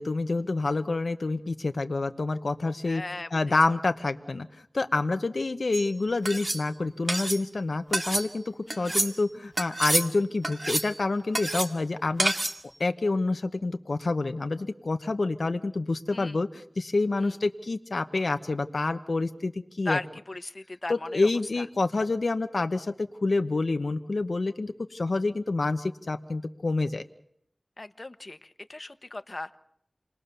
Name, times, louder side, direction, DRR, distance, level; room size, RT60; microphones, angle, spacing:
voice 1, 0.0-3.0 3.3-12.3 12.8-19.5 19.8-20.0 20.9-27.0, left 3 dB, 85° left, 8 dB, 0.9 m, -28 dB
voice 2, 2.8-3.3 8.7-9.0 16.1-16.4 17.2-17.3 19.8-21.3 21.6-21.7 27.8-29.6, left 2 dB, 55° left, 11 dB, 1.1 m, -37 dB
sound 1, 5.7-5.9 6.2-6.6 7.1-7.4 7.9-8.3 8.7-9.1 9.6-10.1 10.4-10.9 11.3-11.7 12.2-12.6, right 2 dB, 50° right, 2.0 m, -28 dB
29.5 x 20.0 x 6.8 m, 0.71 s
wide cardioid pair, 45°, 0 cm